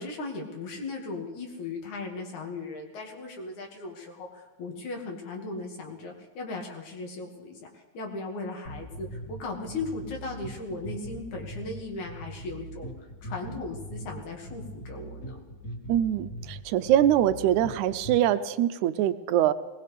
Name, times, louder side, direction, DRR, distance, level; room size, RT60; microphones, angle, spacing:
voice 1, 0.0-15.4, left 3 dB, 75° left, 1 dB, 3.4 m, -37 dB
sound 1, 8.6-18.2, right 1 dB, 30° left, 2.6 m, -41 dB
voice 2, 15.9-19.5, right 11 dB, 85° right, 13 dB, 2.0 m, -23 dB
21.0 x 19.5 x 3.4 m, 1.2 s
omnidirectional pair, 3.4 m